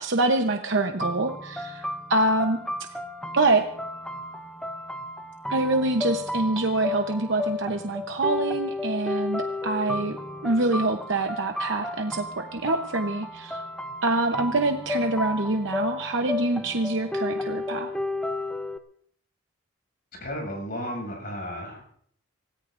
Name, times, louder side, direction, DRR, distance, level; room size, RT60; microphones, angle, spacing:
voice 1, 0.0-2.6 3.3-3.6 5.5-10.2 10.4-13.6 14.0-17.9, right 2 dB, 60° right, 4 dB, 0.9 m, -25 dB
sound 1, 1.0-18.8, left 2 dB, 5° left, 0.7 m, -33 dB
voice 2, 20.2-21.9, equal, 45° left, 1 dB, 7.0 m, -34 dB
25.5 x 17.5 x 2.6 m, 0.63 s
head